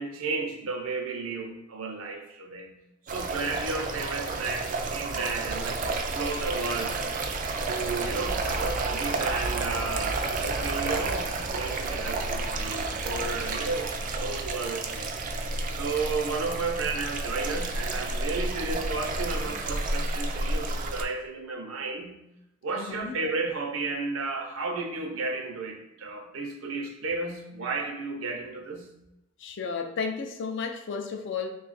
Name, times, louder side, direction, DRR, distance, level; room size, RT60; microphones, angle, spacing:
voice 1, 0.0-2.7 3.1-7.0 7.7-15.1 15.4-22.2 22.6-28.9, right 3 dB, 80° right, 0.6 m, -33 dB
sound 1, 3.1-21.0, right 3 dB, 40° right, 0.3 m, -31 dB
voice 2, 22.7-23.1 29.4-31.5, left 5 dB, 60° left, 0.4 m, -33 dB
3.2 x 2.4 x 4.0 m
head